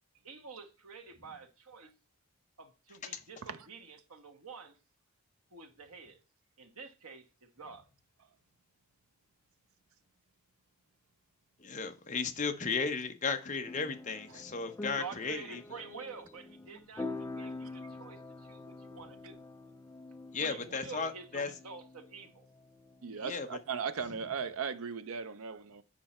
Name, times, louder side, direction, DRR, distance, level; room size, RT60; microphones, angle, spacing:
voice 1, 0.2-1.9 2.6-4.8 5.5-6.2 6.6-7.9 14.9-19.4 20.4-22.5, right 5 dB, 85° right, 1.3 m, -48 dB
voice 2, 11.6-15.6 20.3-21.5 23.2-23.5, left 4 dB, 35° left, 0.8 m, -35 dB
sound 1, 13.7-23.3, left 2 dB, 10° left, 0.3 m, -46 dB
voice 3, 23.0-25.8, right 6 dB, 70° right, 0.5 m, -37 dB
7.5 x 5.3 x 4.3 m
head